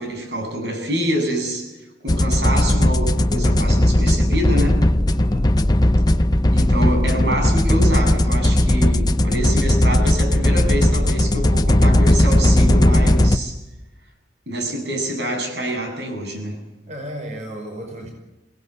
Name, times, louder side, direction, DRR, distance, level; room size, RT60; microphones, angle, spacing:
voice 1, 0.0-1.7 2.0-4.8 6.5-13.6 14.5-16.6, right 1 dB, 75° right, 3 dB, 7.6 m, -26 dB
sound 1, 2.1-13.4, left 1 dB, 25° left, 0.7 m, -17 dB
voice 2, 5.1-5.5 16.9-18.1, equal, 40° right, 3 dB, 5.3 m, -33 dB
27.0 x 18.5 x 8.3 m, 1.0 s
head